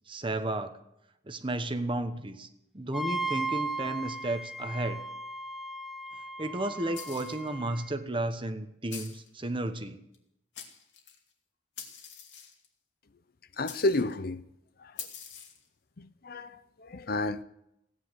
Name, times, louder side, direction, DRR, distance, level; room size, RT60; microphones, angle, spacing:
voice 1, 0.1-0.7 1.3-2.5 2.7-5.0 6.4-10.0, right 1 dB, 30° right, 1.1 m, -33 dB
Wind instrument woodwind instrument, 2.9-7.9, right 2 dB, ahead, 0.7 m, -36 dB
sound 1, 6.9-7.5 8.9-9.3 10.1-10.2 10.5-11.2 11.8-12.7 13.6-14.1 15.0-15.7, left 8 dB, 80° left, 2.6 m, -44 dB
voice 2, 13.6-14.4 14.8-14.9 16.0-17.4, left 2 dB, 55° left, 0.7 m, -31 dB
16.5 x 9.7 x 8.0 m
head